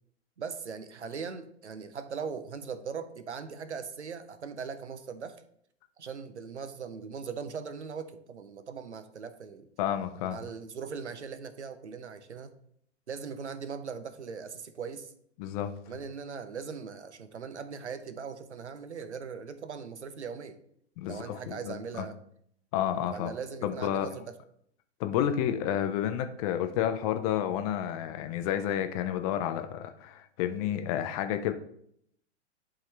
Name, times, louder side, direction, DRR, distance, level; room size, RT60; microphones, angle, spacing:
voice 1, 0.4-5.4 6.0-9.7 10.3-12.6 13.1-15.1 15.9-20.6 21.1-22.2 23.1-24.3, right 6 dB, 75° right, 11 dB, 0.8 m, -40 dB
voice 2, 9.8-10.4 15.4-15.7 21.0-22.0 22.7-23.3 23.6-24.1 25.0-31.5, left 10 dB, 30° left, 8 dB, 0.6 m, -30 dB
11.0 x 3.7 x 3.2 m, 0.68 s
figure-of-eight pair, 100°, 35 cm